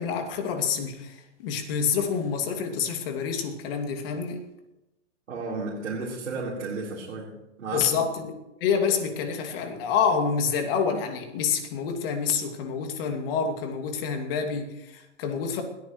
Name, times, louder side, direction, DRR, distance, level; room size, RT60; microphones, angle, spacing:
voice 1, 0.0-4.4 7.7-8.3 8.6-15.6, left 6 dB, 50° left, 4 dB, 2.6 m, -27 dB
voice 2, 5.3-7.3 7.6-7.9, right 3 dB, 85° right, -6 dB, 4.4 m, -33 dB
21.0 x 14.5 x 3.2 m, 0.94 s
hypercardioid pair, 125°, 37 cm